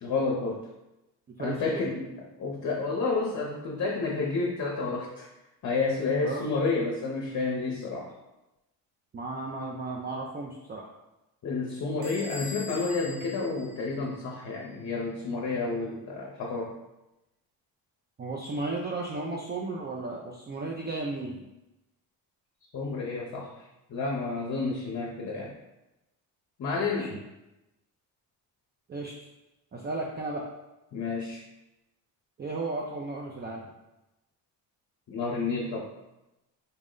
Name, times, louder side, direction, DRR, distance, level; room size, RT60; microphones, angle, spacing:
voice 1, 0.0-0.6 1.4-5.3 5.6-8.1 11.4-16.7 22.7-23.5 23.9-25.5 26.6-27.1 30.9-31.4 35.1-35.9, left 3 dB, 45° left, -1 dB, 0.7 m, -30 dB
voice 2, 1.4-1.9 6.2-6.5 9.1-10.9 18.2-21.4 27.0-27.2 28.9-29.1 29.7-30.4 32.4-33.7, right 3 dB, 25° right, -2 dB, 0.4 m, -34 dB
Bell / Door, 12.0-14.5, left 3 dB, 65° right, 1.1 m, -43 dB
4.1 x 2.0 x 3.7 m, 0.96 s
cardioid pair, 85°, 41 cm